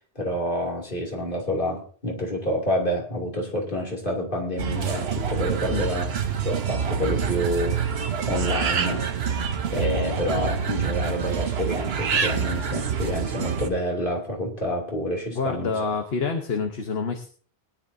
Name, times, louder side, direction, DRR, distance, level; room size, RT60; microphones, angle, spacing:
voice 1, 0.1-6.1 6.4-9.0 9.7-15.7, equal, 50° left, -1 dB, 3.1 m, -28 dB
sound 1, 4.6-13.7, right 6 dB, 70° right, 1.1 m, -26 dB
voice 2, 15.3-17.3, left 5 dB, 65° left, 5 dB, 1.4 m, -27 dB
20.5 x 10.5 x 2.7 m, 0.43 s
omnidirectional pair, 1.1 m